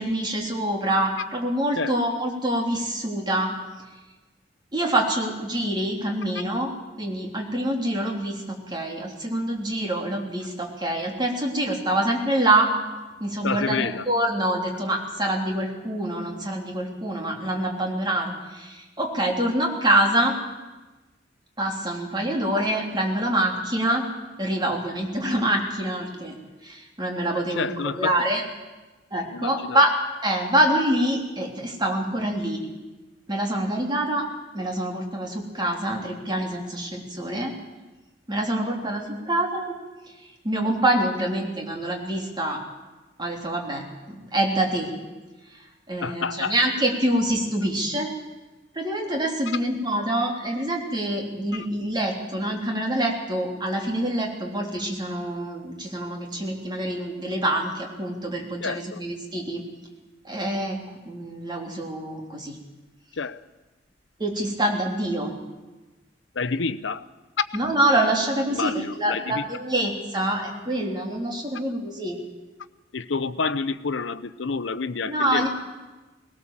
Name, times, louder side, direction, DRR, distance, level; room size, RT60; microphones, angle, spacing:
voice 1, 0.0-3.5 4.7-6.7 7.0-12.7 13.2-20.3 21.6-24.1 24.4-26.3 26.6-27.7 28.0-28.4 29.1-29.9 30.2-32.6 33.3-34.2 34.5-37.5 38.3-39.7 40.4-42.6 43.2-44.9 45.5-45.6 45.9-48.1 48.7-59.6 60.2-60.8 61.0-62.6 64.2-65.3 67.5-72.2 75.0-75.5, right 1 dB, 25° right, 1 dB, 3.3 m, -25 dB
voice 2, 13.4-14.0 27.3-28.2 29.3-29.8 46.0-46.5 58.6-59.0 63.1-63.4 66.3-67.1 68.5-69.5 72.9-75.5, left 4 dB, 75° left, 14 dB, 0.7 m, -29 dB
20.0 x 18.0 x 7.5 m, 1.2 s
head